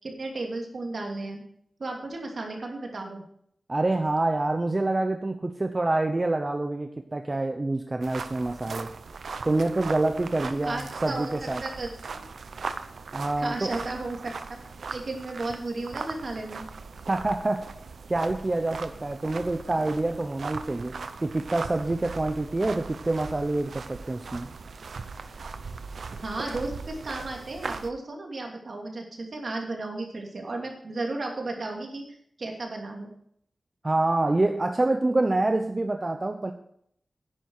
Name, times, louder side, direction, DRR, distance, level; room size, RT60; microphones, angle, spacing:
voice 1, 0.0-1.4 1.8-3.2 10.6-12.2 13.4-14.6 14.9-16.6 26.2-32.1 32.4-33.1, right 2 dB, 65° right, 1 dB, 2.8 m, -34 dB
voice 2, 3.7-8.9 9.4-11.6 13.1-13.7 17.1-17.6 18.1-24.5 33.8-36.5, right 2 dB, 35° right, 6 dB, 0.9 m, -26 dB
sound 1, 8.0-27.9, right 4 dB, 90° right, 0.7 m, -39 dB
10.5 x 9.8 x 4.8 m, 0.67 s
wide cardioid pair, 70°, 0 cm